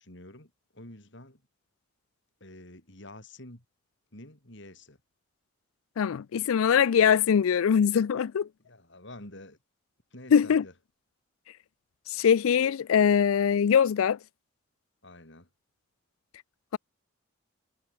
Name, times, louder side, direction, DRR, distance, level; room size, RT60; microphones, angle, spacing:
voice 1, 0.0-1.4 2.4-3.6 4.1-5.0 8.7-9.6 10.1-10.7 15.0-15.5, left 1 dB, 60° left, 5.7 m, -48 dB
voice 2, 6.0-8.5 10.3-10.6 12.1-14.2, left 7 dB, 85° left, 0.4 m, -22 dB
head